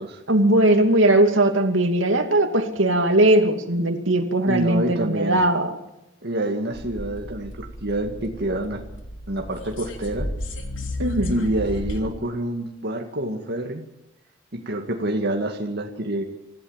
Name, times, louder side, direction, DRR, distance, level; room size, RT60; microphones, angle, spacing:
voice 1, 0.3-5.7 11.0-11.4, right 1 dB, 85° right, 5 dB, 2.7 m, -19 dB
voice 2, 4.5-5.4 6.2-8.8 9.3-10.3 11.3-13.8 14.5-16.2, right 1 dB, 60° right, 3 dB, 2.1 m, -27 dB
sound 1, 6.7-12.0, left 1 dB, 85° left, 3.3 m, -33 dB
25.5 x 15.5 x 7.4 m, 0.88 s
head